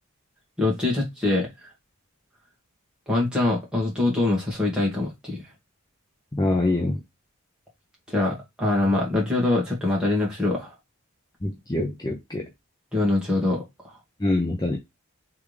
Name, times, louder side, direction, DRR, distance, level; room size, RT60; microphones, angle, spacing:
voice 1, 0.6-1.7 3.1-5.4 8.1-10.7 12.9-13.6, left 2 dB, 5° right, 1.7 m, -24 dB
voice 2, 6.3-7.0 11.4-12.5 14.2-14.8, left 2 dB, 20° left, 0.6 m, -25 dB
3.6 x 3.4 x 3.2 m
head